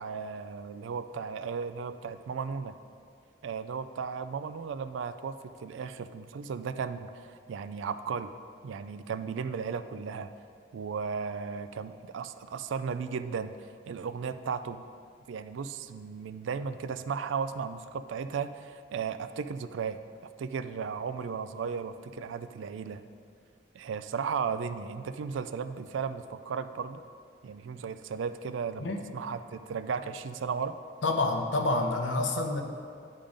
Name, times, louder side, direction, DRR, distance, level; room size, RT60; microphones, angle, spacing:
voice 1, 0.0-2.8 3.4-8.3 8.6-10.3 10.7-13.5 13.9-14.8 15.3-20.0 20.4-23.0 23.7-27.0 27.4-30.8, right 6 dB, 75° right, 11 dB, 0.3 m, -35 dB
voice 2, 31.0-32.6, left 2 dB, 75° left, 4 dB, 0.7 m, -28 dB
10.0 x 3.7 x 5.1 m, 2.3 s
head